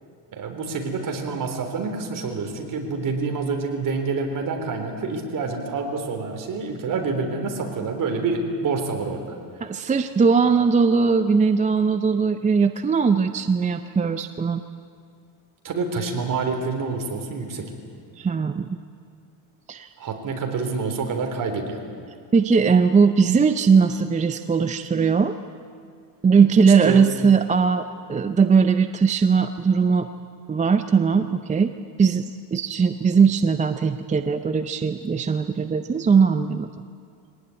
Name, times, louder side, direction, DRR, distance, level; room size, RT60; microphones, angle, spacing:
voice 1, 0.3-9.4 15.6-17.7 20.0-21.8 26.8-27.0, right 4 dB, 45° right, 3 dB, 3.8 m, -27 dB
voice 2, 9.6-14.6 18.2-18.8 19.7-19.9 22.3-25.4 26.2-30.1 30.5-31.7 32.0-36.7, right 5 dB, 15° right, 9 dB, 0.5 m, -19 dB
23.0 x 18.5 x 9.6 m, 2.3 s
cardioid pair, 135°, 46 cm